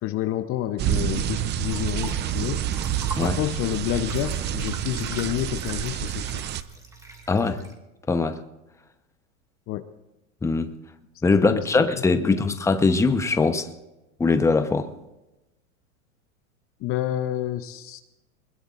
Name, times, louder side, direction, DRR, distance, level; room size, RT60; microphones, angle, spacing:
voice 1, 0.0-2.7 3.2-6.4 9.7-9.8 11.4-11.9 12.2-12.4 16.8-18.0, left 13 dB, 35° left, 0.7 m, -29 dB
sound 1, 0.8-6.6, right 10 dB, 25° right, 0.6 m, -28 dB
sound 2, 1.7-7.7, right 2 dB, 10° right, 2.3 m, -43 dB
voice 2, 7.3-7.6 8.1-8.4 10.4-10.7 11.2-13.7 14.2-14.9, left 3 dB, 5° left, 0.9 m, -21 dB
22.5 x 21.0 x 2.5 m
hypercardioid pair, 110°, 39 cm